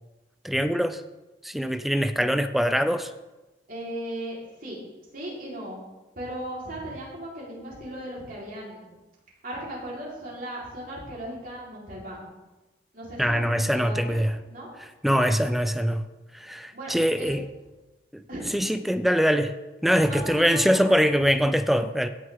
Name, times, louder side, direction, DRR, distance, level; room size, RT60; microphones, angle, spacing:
voice 1, 0.4-1.0 1.4-3.1 13.2-14.3 15.0-16.1 16.3-17.4 18.1-18.2 18.5-19.5 19.8-22.1, equal, ahead, 10 dB, 0.4 m, -23 dB
voice 2, 3.7-4.8 5.1-5.8 6.2-8.9 9.4-12.3 12.9-14.2 14.5-14.7 16.7-16.9 17.2-17.3 18.3-18.7 19.9-21.1, right 1 dB, 50° right, -6 dB, 3.9 m, -37 dB
17.0 x 6.5 x 3.6 m, 1.1 s
head